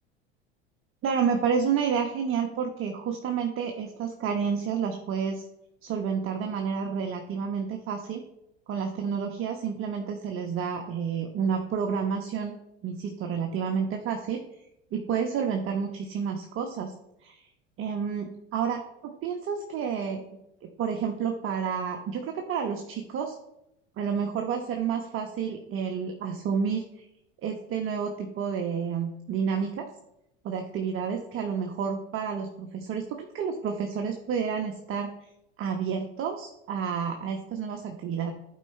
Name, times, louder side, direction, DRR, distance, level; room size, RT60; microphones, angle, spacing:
voice 1, 1.0-5.4 5.8-8.2 8.7-12.5 12.8-14.4 14.9-16.9 17.2-17.5 17.8-20.2 20.6-23.3 24.0-27.0 27.4-29.9 30.4-35.1 35.6-38.3, right 6 dB, 45° right, 4 dB, 1.1 m, -30 dB
11.5 x 4.8 x 4.4 m, 0.85 s
hypercardioid pair, 80°, 31 cm